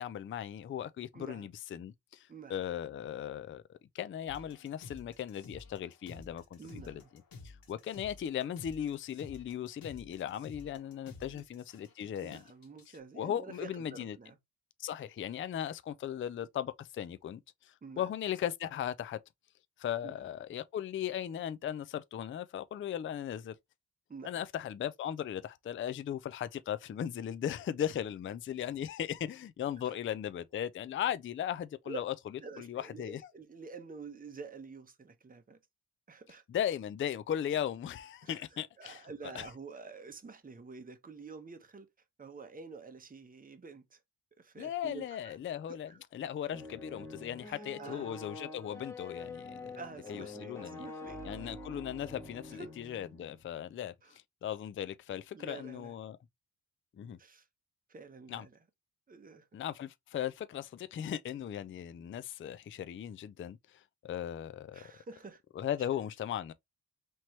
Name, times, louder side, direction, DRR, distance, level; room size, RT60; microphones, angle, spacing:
voice 1, 0.0-6.6 6.9-7.0 7.4-12.4 13.2-14.2 14.8-19.2 19.8-23.6 24.2-32.1 32.6-33.3 36.5-39.1 39.3-39.5 44.6-49.8 50.1-50.9 51.2-56.2 57.0-57.2 58.3-58.5 59.5-64.9 65.6-66.5, left 10 dB, 35° left, 0.4 m, -37 dB
voice 2, 1.1-1.5 2.3-2.6 6.6-7.1 11.3-11.4 12.0-14.4 17.8-18.1 20.0-20.2 24.1-24.3 29.8-30.0 31.9-32.0 32.4-35.6 36.1-36.4 38.2-41.9 42.2-44.0 44.4-45.4 45.7-46.0 47.4-48.1 49.7-51.5 52.5-52.9 54.0-54.1 55.3-55.9 57.2-57.5 57.9-58.6 59.1-59.5 64.7-65.4, right 4 dB, 20° right, 0.8 m, -48 dB
sound 1, 4.3-13.0, left 3 dB, 60° left, 1.2 m, -52 dB
sound 2, 46.5-53.5, left 2 dB, 5° left, 1.1 m, -46 dB
4.4 x 3.0 x 3.1 m
cardioid pair, 85°, 39 cm